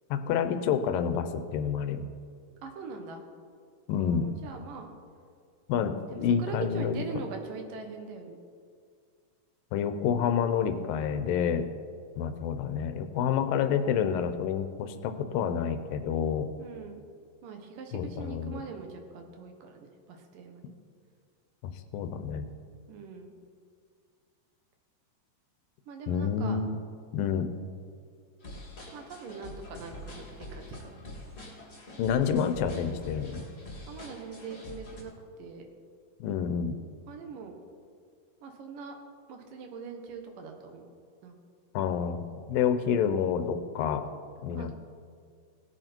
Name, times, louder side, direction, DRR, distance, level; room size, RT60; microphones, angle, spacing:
voice 1, 0.1-2.0 3.9-4.3 5.7-7.0 9.7-11.7 12.2-16.5 17.9-18.6 21.6-22.5 26.1-26.8 27.1-27.5 32.0-33.4 36.2-36.8 41.7-44.1 44.4-44.7, left 7 dB, 90° left, 9 dB, 2.5 m, -28 dB
voice 2, 2.6-3.2 3.9-4.9 6.1-8.4 16.6-17.1 17.4-20.6 22.9-23.3 25.9-26.6 28.9-31.0 33.9-35.1 35.4-35.7 37.1-37.5 38.4-39.0 39.3-40.9 41.2-41.3 44.5-44.7, right 4 dB, 75° right, 4 dB, 2.9 m, -42 dB
sound 1, 28.4-35.0, left 1 dB, 25° left, 1.8 m, -45 dB
18.0 x 9.1 x 4.5 m, 2.1 s
omnidirectional pair, 3.9 m